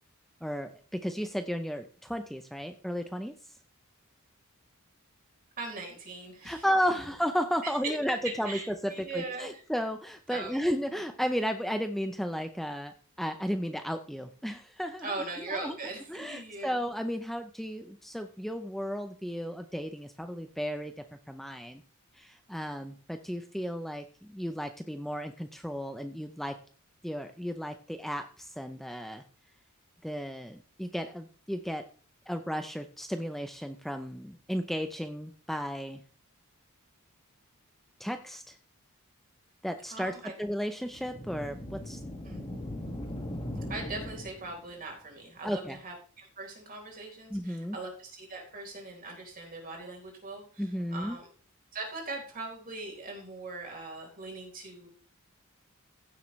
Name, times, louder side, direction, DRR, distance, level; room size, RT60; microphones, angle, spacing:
voice 1, 0.4-3.3 6.4-15.1 15.5-15.8 16.1-20.9 21.3-21.8 22.2-26.6 27.0-29.2 30.0-31.8 32.3-36.0 38.0-38.6 39.6-42.0 45.4-45.8 47.3-47.8 50.6-51.2, equal, ahead, 7 dB, 0.6 m, -34 dB
voice 2, 5.6-6.6 8.0-9.6 10.3-10.7 15.0-16.8 39.9-40.3 42.2-42.6 43.7-51.3 51.7-54.9, right 3 dB, 40° right, 1 dB, 4.0 m, -40 dB
sound 1, 40.9-44.7, left 1 dB, 25° left, 1.9 m, -39 dB
15.5 x 7.5 x 3.2 m, 0.40 s
head